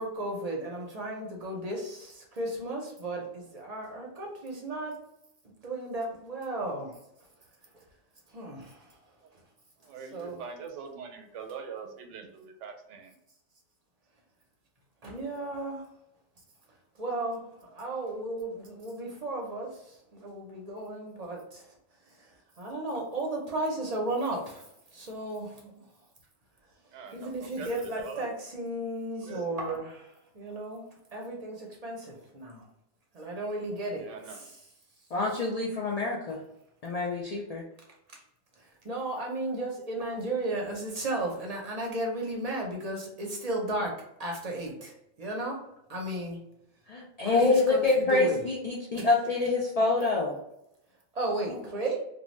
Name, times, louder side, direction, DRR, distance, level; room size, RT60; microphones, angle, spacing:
voice 1, 0.0-5.0 5.6-6.9 8.3-8.7 10.1-10.4 15.0-15.8 17.0-17.4 17.7-19.7 20.1-21.6 22.6-24.6 24.9-25.7 27.1-30.1 30.3-30.8 31.1-32.6 33.1-34.0 38.8-43.9 44.2-44.9 45.2-45.6 45.9-46.4 47.2-48.4 51.2-52.0, right 1 dB, 45° right, -1 dB, 0.5 m, -34 dB
voice 2, 9.8-13.1 26.9-28.3 29.2-29.5 33.9-34.5, right 6 dB, 90° right, 4 dB, 0.9 m, -43 dB
voice 3, 35.1-36.4 36.8-37.7 46.9-50.4 51.5-51.6, left 3 dB, 65° left, -2 dB, 0.3 m, -26 dB
2.7 x 2.2 x 3.0 m, 0.80 s
omnidirectional pair, 1.2 m